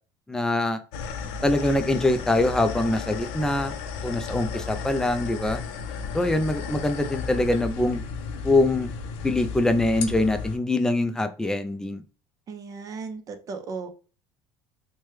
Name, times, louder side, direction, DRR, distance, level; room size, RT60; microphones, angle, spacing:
voice 1, 0.3-0.8 1.4-3.7 4.0-5.6 6.1-8.0 8.3-8.9 9.2-12.0, left 2 dB, 5° left, 7 dB, 0.4 m, -23 dB
sound 1, 0.9-10.6, left 5 dB, 80° left, 0.5 m, -34 dB
voice 2, 12.5-13.9, right 4 dB, 40° right, 8 dB, 0.6 m, -36 dB
3.1 x 2.2 x 3.1 m, 0.35 s
cardioid pair, 120°, 9 cm